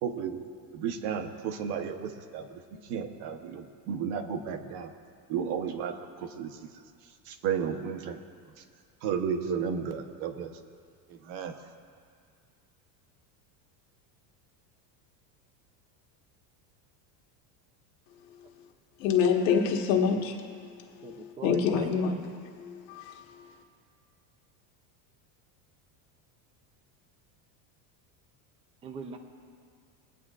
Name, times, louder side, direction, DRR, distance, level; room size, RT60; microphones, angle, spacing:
voice 1, 0.0-0.4 0.7-4.9 5.3-6.7 7.3-8.2 8.6-8.7 9.0-10.5 11.1-11.7, right 7 dB, 65° right, 7 dB, 1.1 m, -33 dB
voice 2, 19.0-20.3 21.4-22.3 22.9-23.0, left 6 dB, 80° left, 1 dB, 1.6 m, -25 dB
voice 3, 21.0-22.2 28.8-29.2, right 4 dB, 15° right, 5 dB, 0.4 m, -40 dB
22.5 x 9.3 x 2.5 m, 2.2 s
cardioid pair, 155°, 50 cm